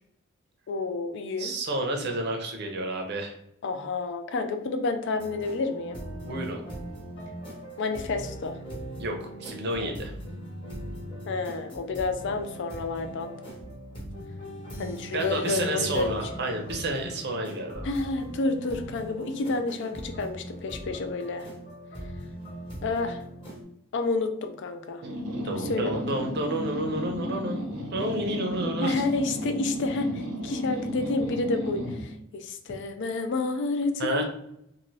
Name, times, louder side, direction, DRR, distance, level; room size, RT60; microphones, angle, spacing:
voice 1, 0.7-1.5 3.6-6.0 7.8-8.6 11.3-13.3 14.8-16.1 17.8-21.5 22.8-23.2 23.9-25.0 25.6-26.0 28.8-34.2, left 3 dB, 60° left, 7 dB, 0.4 m, -29 dB
voice 2, 1.4-3.4 6.1-6.6 9.0-10.1 15.1-17.9 25.3-28.9 34.0-34.2, right 1 dB, 55° right, 3 dB, 0.6 m, -30 dB
sound 1, 5.1-23.6, right 1 dB, 25° left, 1.0 m, -40 dB
sound 2, 25.0-32.1, equal, 90° right, 0.8 m, -34 dB
2.6 x 2.6 x 3.0 m, 0.77 s
head